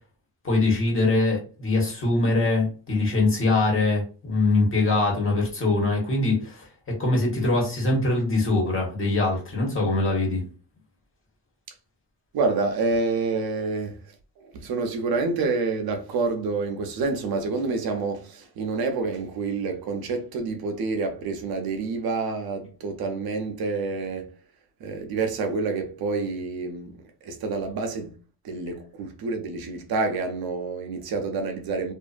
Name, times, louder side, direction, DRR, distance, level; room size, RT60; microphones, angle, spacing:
voice 1, 0.4-10.4, left 2 dB, 35° left, 1.3 m, -23 dB
voice 2, 12.3-14.0 14.4-24.3 24.8-28.2 28.4-31.9, right 3 dB, 80° right, 0.7 m, -28 dB
2.6 x 2.5 x 2.4 m
cardioid pair, 100°, 36 cm